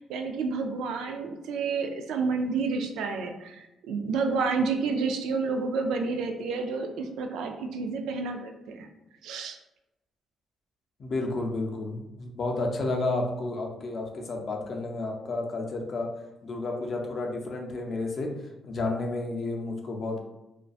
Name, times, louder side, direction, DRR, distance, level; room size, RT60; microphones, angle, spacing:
voice 1, 0.0-8.9 9.2-9.6, right 4 dB, 85° right, 4 dB, 0.3 m, -30 dB
voice 2, 11.0-16.1 16.4-18.3 18.6-20.2, left 2 dB, 50° left, 1 dB, 0.5 m, -31 dB
2.5 x 2.1 x 2.3 m, 0.95 s
cardioid pair, 90°, 0 cm